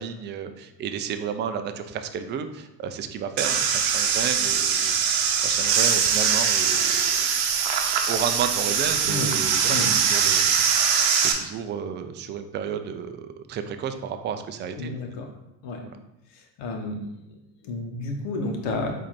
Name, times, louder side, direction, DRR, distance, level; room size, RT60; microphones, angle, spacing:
voice 1, 0.0-7.0 8.1-9.8 10.0-14.9, right 7 dB, 25° right, 8 dB, 0.3 m, -32 dB
sound 1, 3.4-11.3, right 7 dB, 65° right, 0.8 m, -22 dB
voice 2, 14.8-15.3 15.6-15.8 16.3-17.0 17.3-17.4 17.6-18.9, left 2 dB, 65° left, 3 dB, 1.1 m, -31 dB
4.3 x 2.7 x 4.2 m, 0.89 s
hypercardioid pair, 75°, 49 cm